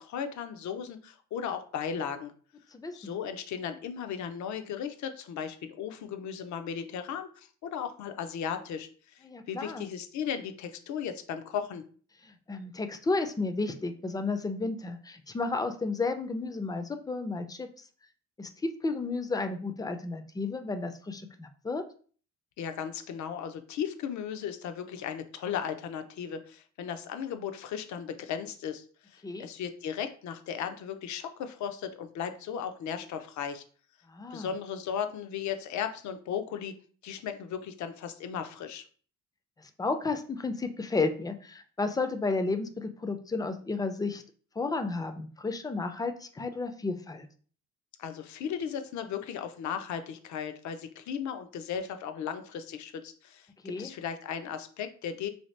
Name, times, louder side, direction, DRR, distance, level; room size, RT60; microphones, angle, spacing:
voice 1, 0.0-2.3 2.9-11.8 22.6-33.6 34.3-36.7 37.0-38.9 48.0-55.3, left 8 dB, 70° left, 8 dB, 0.5 m, -36 dB
voice 2, 2.7-3.1 9.2-9.9 12.2-17.7 18.4-21.8 29.2-29.5 34.1-34.5 39.6-44.2 44.6-47.3 53.6-53.9, left 3 dB, 15° left, 7 dB, 0.4 m, -32 dB
2.8 x 2.8 x 3.1 m, 0.43 s
cardioid pair, 90°, 30 cm